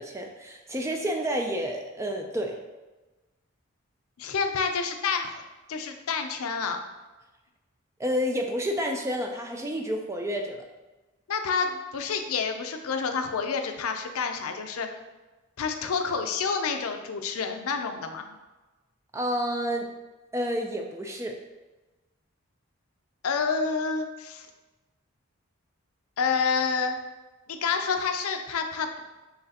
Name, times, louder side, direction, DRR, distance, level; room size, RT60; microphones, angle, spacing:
voice 1, 0.0-2.6 8.0-10.6 19.1-19.9 20.3-21.4, equal, 15° right, 2 dB, 0.3 m, -30 dB
voice 2, 4.2-5.4 5.7-6.8 11.3-14.9 15.6-18.4 23.2-24.5 26.2-27.0 27.5-28.9, left 5 dB, 80° left, 6 dB, 0.5 m, -28 dB
5.9 x 3.2 x 2.8 m, 1.1 s
head